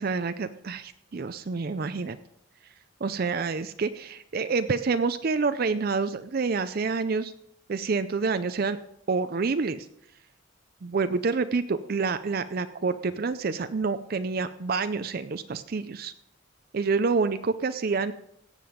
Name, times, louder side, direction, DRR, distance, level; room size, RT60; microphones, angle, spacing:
voice 1, 0.0-2.2 3.0-7.3 7.7-8.8 9.1-9.9 10.8-16.1 16.7-18.1, right 4 dB, 45° right, 11 dB, 0.4 m, -28 dB
17.0 x 7.6 x 5.1 m, 0.77 s
head